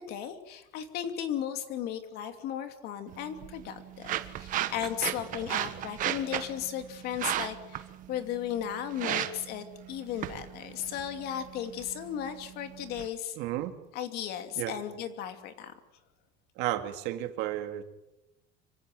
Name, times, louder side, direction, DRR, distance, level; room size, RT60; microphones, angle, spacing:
voice 1, 0.0-13.4 13.9-15.7, left 10 dB, 60° left, 8 dB, 2.8 m, -36 dB
sound 1, 3.1-13.1, right 13 dB, 50° right, 1.4 m, -36 dB
voice 2, 13.4-13.7 14.6-14.7 16.6-17.8, right 14 dB, 80° right, 7 dB, 2.4 m, -32 dB
26.0 x 15.5 x 9.3 m, 0.93 s
cardioid pair, 165°, 18 cm